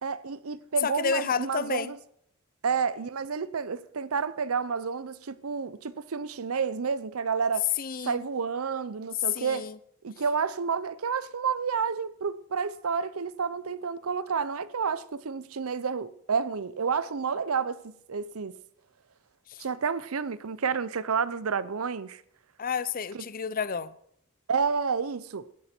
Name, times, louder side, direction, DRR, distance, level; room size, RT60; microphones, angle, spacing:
voice 1, 0.0-2.0 2.6-7.7 8.0-9.7 10.0-18.6 19.6-22.2 23.1-23.2 24.5-25.5, right 5 dB, 90° right, 0.7 m, -30 dB
voice 2, 0.8-1.9 7.8-8.3 9.3-9.8 19.5-19.6 22.6-23.9, left 6 dB, 45° left, 0.6 m, -31 dB
17.0 x 13.5 x 4.5 m
head